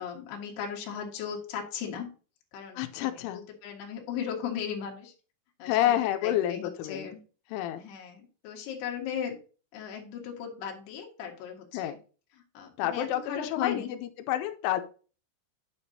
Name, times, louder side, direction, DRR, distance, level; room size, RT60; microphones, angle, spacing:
voice 1, 0.0-2.1 2.5-5.1 5.6-7.2 7.8-9.4 9.7-11.9 12.5-13.9, left 8 dB, 65° left, 1 dB, 3.3 m, -37 dB
voice 2, 2.8-3.4 5.6-7.1 7.5-7.8 11.7-12.0 12.8-14.0 14.3-14.8, left 12 dB, 90° left, 8 dB, 3.1 m, -29 dB
9.2 x 6.9 x 2.7 m, 0.37 s
omnidirectional pair, 5.4 m